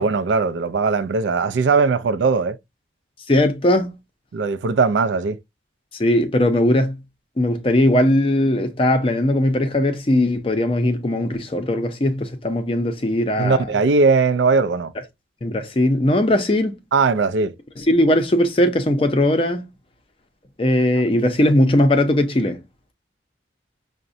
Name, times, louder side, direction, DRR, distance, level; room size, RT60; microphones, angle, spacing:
voice 1, 0.0-2.6 4.3-5.4 13.4-14.9 16.9-17.5, right 4 dB, 75° right, 0.4 m, -19 dB
voice 2, 3.3-4.0 5.9-7.0 7.4-13.7 15.4-16.8 17.8-19.7 20.6-22.6, left 1 dB, 30° left, 0.5 m, -19 dB
5.8 x 2.1 x 2.6 m
head